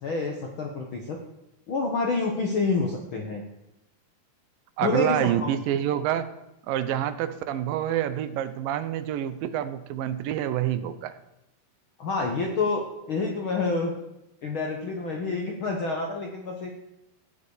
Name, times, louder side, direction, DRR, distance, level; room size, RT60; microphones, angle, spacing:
voice 1, 0.0-1.2 1.7-3.4 4.8-5.5 12.0-14.0 14.4-16.7, left 3 dB, 65° left, 1 dB, 1.3 m, -28 dB
voice 2, 4.8-6.3 6.7-11.1, right 11 dB, 85° right, 12 dB, 2.5 m, -27 dB
15.0 x 9.6 x 4.9 m, 0.90 s
omnidirectional pair, 4.0 m